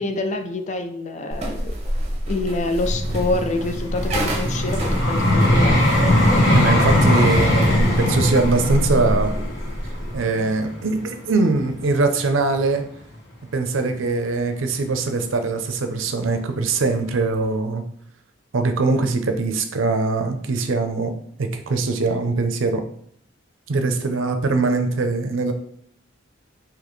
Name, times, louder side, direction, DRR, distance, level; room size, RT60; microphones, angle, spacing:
voice 1, 0.0-1.7 2.3-5.9, left 2 dB, 35° left, 6 dB, 0.4 m, -26 dB
sound 1, 1.3-10.2, equal, 35° right, 0.7 m, -27 dB
Vehicle, 2.8-11.9 12.5-12.7, left 1 dB, 60° left, 1.2 m, -20 dB
voice 2, 6.5-9.4 10.1-12.8 13.5-17.8 18.5-21.1 21.4-22.8 23.7-25.5, right 3 dB, 80° right, 7 dB, 0.5 m, -22 dB
4.0 x 3.0 x 3.1 m, 0.65 s
head